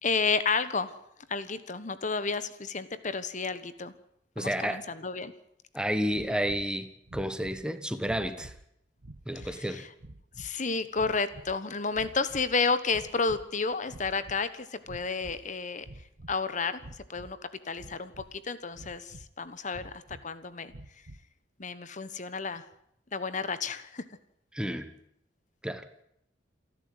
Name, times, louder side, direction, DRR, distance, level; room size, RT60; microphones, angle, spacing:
voice 1, 0.0-0.9 1.3-3.9 4.4-5.3 9.3-9.9 10.4-15.9 16.3-17.4 17.6-20.7 21.6-22.6 23.1-24.0, left 4 dB, 45° left, 1.2 m, -31 dB
voice 2, 4.4-4.8 5.7-8.5 9.3-9.9 24.5-24.9 25.6-25.8, equal, 5° right, 1.4 m, -31 dB
sound 1, 6.1-6.7 7.0-7.7 8.0-8.6 9.0-9.6 10.0-10.5 10.9-11.6 11.9-12.6 12.9-13.5 13.8-14.4 14.8-15.5 15.8-16.4 16.8-17.3 17.8-18.4 18.7-19.3 19.7-20.2 20.7-21.3, right 1 dB, 75° right, 1.4 m, -48 dB
28.5 x 11.5 x 9.6 m
head